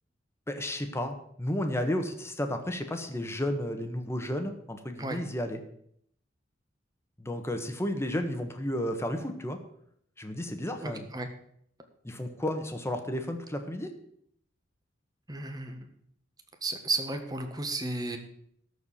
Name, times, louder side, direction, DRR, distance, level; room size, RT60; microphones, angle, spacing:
voice 1, 0.5-5.6 7.2-9.6 10.2-11.1 12.0-13.9, left 1 dB, 15° left, 6 dB, 1.3 m, -32 dB
voice 2, 10.8-11.3 15.3-15.8 16.6-18.2, right 2 dB, 20° right, 5 dB, 1.5 m, -33 dB
13.0 x 4.7 x 8.4 m, 0.68 s
head